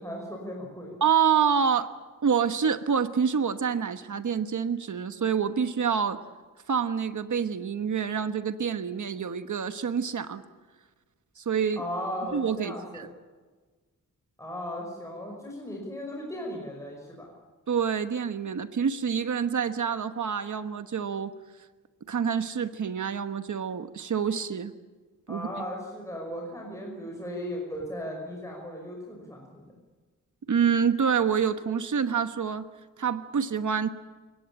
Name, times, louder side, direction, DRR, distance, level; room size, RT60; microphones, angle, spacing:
voice 1, 0.0-1.0 11.8-13.1 14.4-17.3 25.3-29.7, equal, 10° left, -1 dB, 5.5 m, -37 dB
voice 2, 1.0-1.9 2.2-6.2 6.7-10.4 11.4-11.8 12.3-13.1 17.7-21.3 22.1-24.7 25.3-25.5 30.5-32.7 33.0-33.9, right 7 dB, 65° right, 10 dB, 1.2 m, -27 dB
29.5 x 17.5 x 8.8 m, 1.3 s
wide cardioid pair, 155°, 32 cm